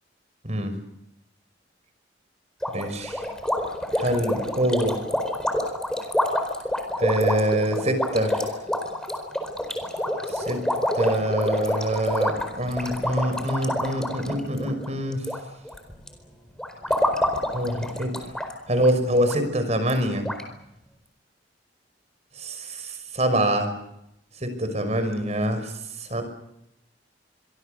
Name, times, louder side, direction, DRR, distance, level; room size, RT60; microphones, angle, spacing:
sound 1, 2.6-15.4 15.6-16.1 16.6-18.5 18.8-18.9 19.3-19.4 19.9-20.0 20.2-20.4, equal, 5° left, 4.5 m, -27 dB
voice 1, 2.7-3.2 3.9-5.0 7.0-8.5 10.3-10.6 10.9-15.2 17.5-18.3 18.7-20.3 22.4-23.7 24.4-25.7 26.0-26.2, right 1 dB, 40° right, 8 dB, 5.8 m, -25 dB
29.0 x 24.0 x 6.8 m, 0.82 s
head